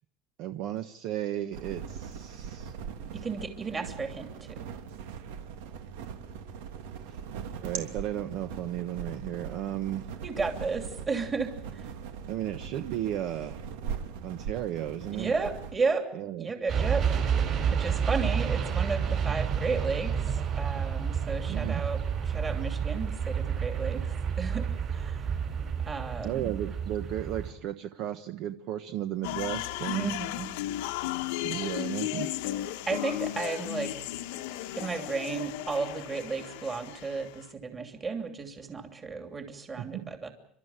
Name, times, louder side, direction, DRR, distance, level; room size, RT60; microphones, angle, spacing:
voice 1, 0.4-2.7 7.1-7.2 7.6-10.1 12.3-13.6 14.2-15.3 16.1-16.5 21.5-21.8 26.2-30.1 31.4-32.4 39.8-40.1, right 12 dB, 50° right, 8 dB, 1.2 m, -34 dB
sound 1, 1.5-15.8, right 7 dB, 90° right, 2.9 m, -40 dB
voice 2, 3.1-4.7 10.2-11.5 15.1-16.1 16.4-17.1 17.8-20.3 20.6-22.0 22.3-24.7 24.9-25.2 25.9-26.5 29.9-30.5 32.9-33.9 34.8-40.3, right 4 dB, 15° right, 5 dB, 2.9 m, -33 dB
sound 2, 16.7-27.5, right 7 dB, 35° right, 4.8 m, -29 dB
sound 3, 29.2-37.4, left 15 dB, 85° left, 1.2 m, -35 dB
29.5 x 13.0 x 9.0 m, 0.72 s
cardioid pair, 170°, 0 cm